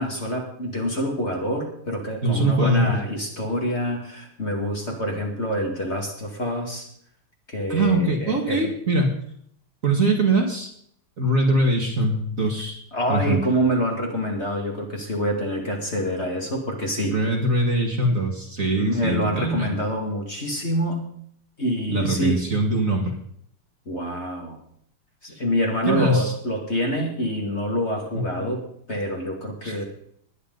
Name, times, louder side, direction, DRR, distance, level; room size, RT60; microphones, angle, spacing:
voice 1, 0.0-6.9 7.5-8.7 12.9-17.2 18.6-21.1 21.6-22.4 23.9-24.6 25.2-29.8, equal, 30° left, 0 dB, 2.3 m, -26 dB
voice 2, 2.2-3.0 7.7-9.1 9.8-10.7 11.2-12.8 13.1-13.4 17.1-19.7 21.9-23.1 25.9-26.3 28.1-28.5 29.6-29.8, right 2 dB, 40° right, 1 dB, 2.2 m, -22 dB
20.5 x 10.0 x 3.9 m, 0.66 s
omnidirectional pair, 2.4 m